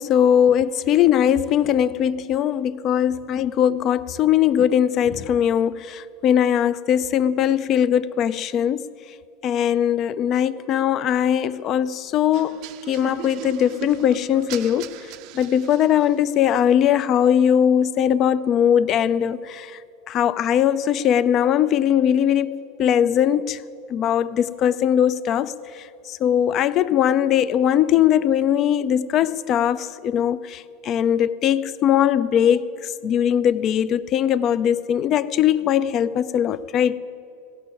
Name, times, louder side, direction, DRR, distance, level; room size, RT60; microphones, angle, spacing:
voice 1, 0.0-8.8 9.4-14.9 15.3-19.8 20.1-23.6 23.9-32.7 33.0-37.0, left 9 dB, 45° left, 0.4 m, -20 dB
sound 1, 12.3-16.3, right 14 dB, 60° right, 0.5 m, -38 dB
16.5 x 6.0 x 8.9 m
hypercardioid pair, 100°, 0 cm